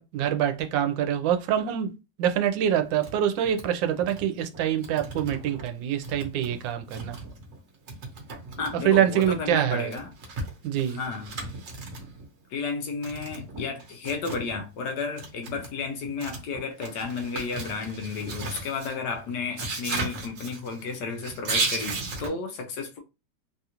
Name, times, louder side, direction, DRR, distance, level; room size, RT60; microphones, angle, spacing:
voice 1, 0.0-1.9 2.2-7.2 8.8-9.9 10.6-11.0, right 10 dB, 90° right, 1.3 m, -25 dB
sound 1, 2.8-3.2 3.4-3.7 4.0-4.3 4.5-5.7 6.0-7.6 7.9-12.3 13.0-14.6 15.0-22.3, right 3 dB, 50° right, 1.2 m, -36 dB
voice 2, 8.6-10.1 10.9-11.4 12.5-23.0, left 4 dB, 70° left, 1.1 m, -32 dB
3.3 x 2.4 x 2.8 m
omnidirectional pair, 2.0 m